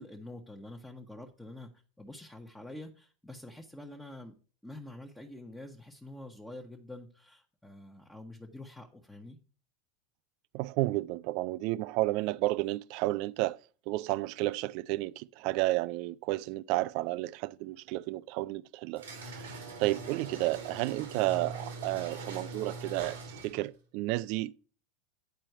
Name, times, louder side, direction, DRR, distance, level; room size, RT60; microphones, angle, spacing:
voice 1, 0.0-1.7 2.0-4.3 4.6-9.4, left 1 dB, 5° left, 1.0 m, -47 dB
voice 2, 10.5-13.6 13.9-19.5 19.8-23.2 23.4-24.6, right 18 dB, 60° right, 0.3 m, -32 dB
sound 1, 19.0-23.7, right 3 dB, 90° right, 2.1 m, -42 dB
9.3 x 4.4 x 4.5 m
hypercardioid pair, 90°, 0 cm